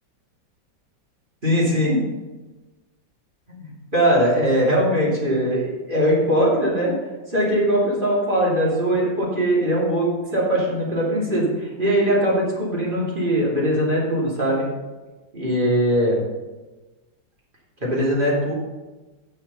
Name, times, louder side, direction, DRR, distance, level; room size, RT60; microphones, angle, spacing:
voice 1, 1.4-2.0 3.6-6.9 7.3-14.7 15.3-16.2 17.8-18.5, equal, 25° right, -5 dB, 3.0 m, -21 dB
9.8 x 6.5 x 5.5 m, 1.2 s
omnidirectional pair, 2.0 m